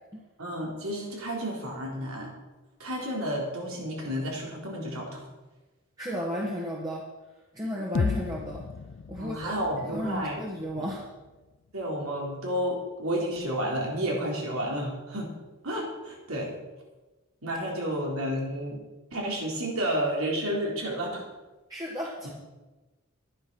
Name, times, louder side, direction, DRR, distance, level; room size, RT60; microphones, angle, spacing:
voice 1, 0.4-2.3 2.8-5.2 9.2-10.4 10.8-10.9 11.7-15.3 15.6-16.5 17.4-18.8 19.1-21.3, equal, 90° right, -2 dB, 3.7 m, -31 dB
voice 2, 6.0-7.0 7.5-8.6 9.1-11.1 21.7-22.3, equal, 20° right, -4 dB, 1.5 m, -34 dB
sound 1, 7.9-11.9, left 5 dB, 55° left, 0.4 m, -35 dB
11.5 x 10.0 x 6.2 m, 1.2 s
head